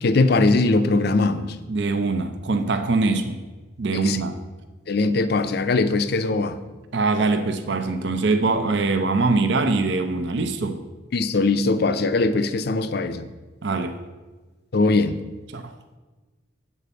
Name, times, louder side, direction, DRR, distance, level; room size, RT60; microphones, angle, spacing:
voice 1, 0.0-1.6 3.9-4.2 4.9-6.6 11.1-13.2 14.7-15.2, left 3 dB, 50° left, 0.5 m, -21 dB
voice 2, 1.7-3.4 3.8-4.4 6.9-10.8 13.6-13.9 15.5-15.7, right 3 dB, 60° right, 0.6 m, -23 dB
8.5 x 4.1 x 6.9 m
head